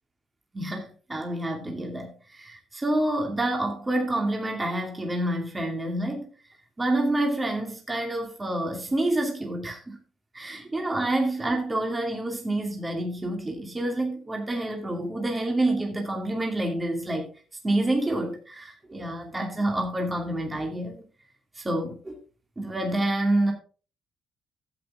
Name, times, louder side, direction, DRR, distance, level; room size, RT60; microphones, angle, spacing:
voice 1, 0.5-6.3 6.8-10.0 10.3-17.3 17.6-21.0 21.6-22.2 22.6-23.5, right 1 dB, 20° right, 2 dB, 2.6 m, -28 dB
11.5 x 8.2 x 3.6 m, 0.37 s
cardioid pair, 90°, 0 cm